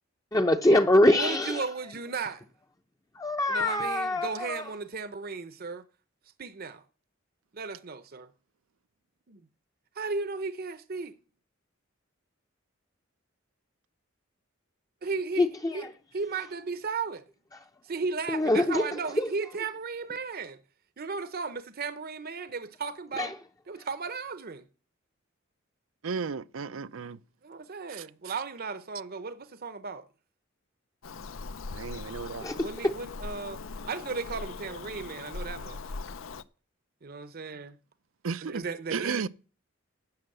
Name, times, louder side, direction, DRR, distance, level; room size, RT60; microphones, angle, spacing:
voice 1, 0.3-1.6 3.2-4.6 15.4-15.8 18.3-18.8 19.2-19.3 23.2-23.3 32.4-32.6, left 1 dB, 15° left, 0.6 m, -24 dB
voice 2, 1.1-2.4 3.5-5.8 6.4-6.8 7.5-8.3 9.3-9.4 9.9-11.1 15.0-15.5 15.7-15.8 16.1-17.2 17.8-20.6 21.0-23.3 23.7-24.7 27.4-30.0 32.6-35.8 37.0-37.8 38.4-39.3, right 4 dB, 50° right, 0.8 m, -35 dB
voice 3, 26.0-27.2 27.9-28.0 31.7-32.5 38.2-39.3, right 5 dB, 80° right, 0.6 m, -34 dB
Bird vocalization bird call bird song, 31.0-36.4, left 4 dB, 75° left, 0.6 m, -40 dB
11.5 x 7.9 x 7.7 m
head